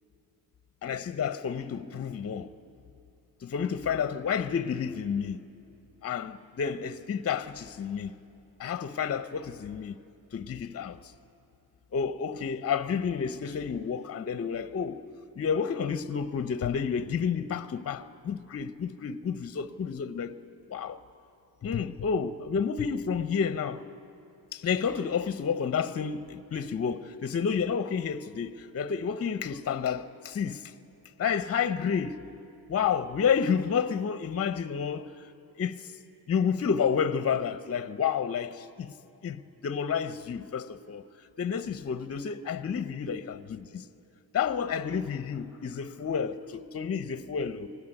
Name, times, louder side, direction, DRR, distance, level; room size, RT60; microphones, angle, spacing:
voice 1, 0.8-2.5 3.4-5.4 6.0-8.2 8.6-10.0 10.3-11.1 11.9-15.1 15.4-20.3 20.7-21.0 21.6-23.8 24.5-30.7 31.2-32.2 32.7-35.1 35.6-35.9 36.3-38.9 39.2-41.0 41.4-43.8 44.3-47.7, left 7 dB, 35° left, 0.8 m, -30 dB
22.5 x 18.0 x 9.1 m
cardioid pair, 90°, 42 cm